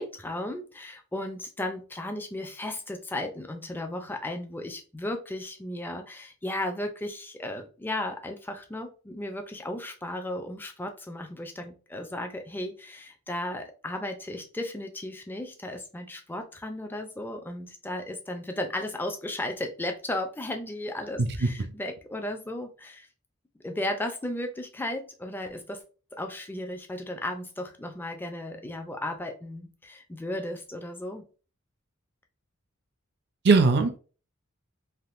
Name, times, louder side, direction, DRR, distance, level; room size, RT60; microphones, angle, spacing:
voice 1, 0.0-23.1 23.6-25.8 26.1-31.3, left 1 dB, 10° left, 5 dB, 0.4 m, -35 dB
voice 2, 21.2-21.7 33.4-34.0, right 4 dB, 50° right, 8 dB, 0.5 m, -21 dB
3.5 x 2.5 x 2.5 m, 0.37 s
head